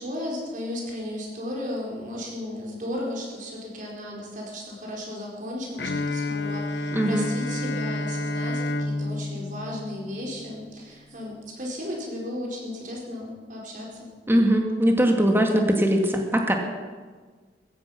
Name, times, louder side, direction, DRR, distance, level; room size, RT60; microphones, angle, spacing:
voice 1, 0.0-14.1, left 1 dB, 50° right, -2 dB, 4.5 m, -35 dB
Bowed string instrument, 5.8-10.7, left 2 dB, 75° left, 0.9 m, -30 dB
voice 2, 6.9-7.3 14.3-16.6, equal, 15° right, 3 dB, 2.0 m, -21 dB
16.0 x 15.0 x 5.8 m, 1.5 s
head